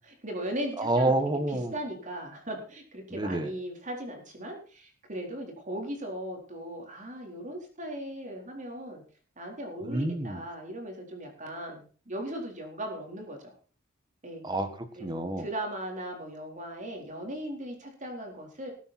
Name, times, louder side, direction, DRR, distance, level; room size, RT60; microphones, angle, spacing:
voice 1, 0.0-1.2 1.7-9.0 9.4-13.5 14.2-14.4 14.9-18.7, right 1 dB, 40° right, 2 dB, 4.2 m, -38 dB
voice 2, 0.8-1.7 3.1-3.5 9.8-10.4 14.4-15.5, right 2 dB, 20° right, 9 dB, 1.6 m, -28 dB
19.5 x 9.1 x 4.4 m, 0.41 s
head